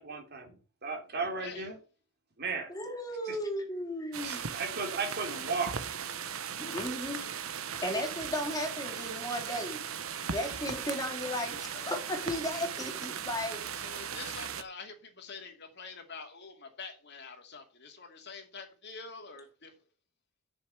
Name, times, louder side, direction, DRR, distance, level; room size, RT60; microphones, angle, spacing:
voice 1, 0.0-1.8 2.4-2.7 3.3-3.4 4.2-5.8, right 4 dB, 50° right, 3.2 m, -35 dB
voice 2, 2.7-4.6 6.6-7.2 7.8-9.9 10.3-13.6, left 1 dB, 20° left, 2.9 m, -35 dB
sound 1, 4.1-14.6, right 7 dB, 85° right, 1.0 m, -38 dB
voice 3, 7.0-7.3 13.7-19.7, left 4 dB, 55° left, 2.6 m, -46 dB
7.8 x 6.7 x 7.6 m
head